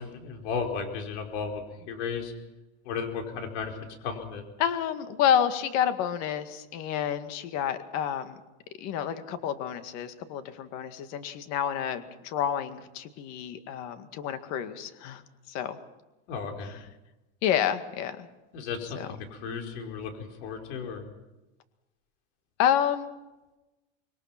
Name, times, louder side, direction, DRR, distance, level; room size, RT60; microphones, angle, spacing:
voice 1, 0.0-2.3 2.9-3.7 4.0-4.4 16.3-16.8 18.5-21.1, left 5 dB, 65° left, 3 dB, 5.1 m, -34 dB
voice 2, 4.6-8.4 8.8-15.2 15.5-15.8 16.6-16.8 17.4-18.3 19.0-19.2 22.6-23.1, left 9 dB, 45° left, 9 dB, 2.0 m, -29 dB
26.0 x 21.5 x 6.0 m, 1.0 s
supercardioid pair, 155°, 36 cm